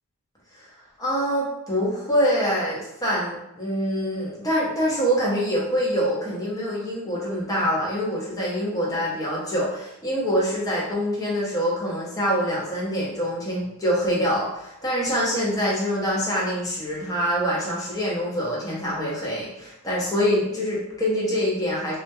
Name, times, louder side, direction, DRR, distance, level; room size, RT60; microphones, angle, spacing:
voice 1, 1.0-22.0, equal, 15° left, -6 dB, 0.6 m, -25 dB
2.2 x 2.1 x 2.9 m, 0.83 s
head